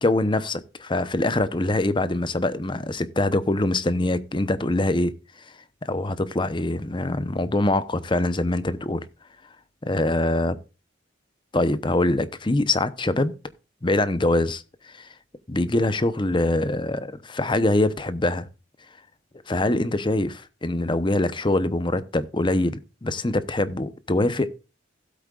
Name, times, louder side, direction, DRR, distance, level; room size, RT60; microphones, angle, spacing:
voice 1, 0.0-5.1 5.8-9.1 9.8-10.6 11.5-13.3 13.8-14.6 15.0-15.1 15.5-18.5 19.5-24.5, left 2 dB, 25° left, 0.8 m, -24 dB
16.0 x 8.4 x 2.4 m
head